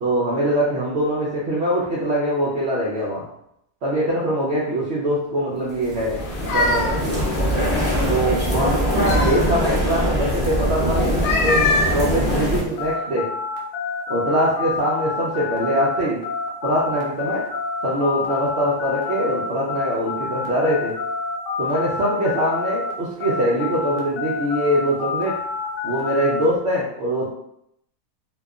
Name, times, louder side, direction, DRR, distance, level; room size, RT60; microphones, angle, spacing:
voice 1, 0.0-3.2 3.8-7.2 8.1-11.7 11.9-13.3 14.1-16.2 16.6-17.4 17.8-20.9 21.6-25.3 25.8-27.3, equal, 90° right, -6 dB, 0.5 m, -23 dB
sound 1, 5.8-12.6, equal, 15° left, 0.4 m, -22 dB
sound 2, 6.2-8.2 8.7-9.9 11.0-12.9, left 2 dB, 85° left, 1.2 m, -25 dB
sound 3, 12.8-22.9 23.2-26.5, left 4 dB, 65° left, 0.7 m, -28 dB
2.7 x 2.3 x 2.3 m, 0.76 s
omnidirectional pair, 1.7 m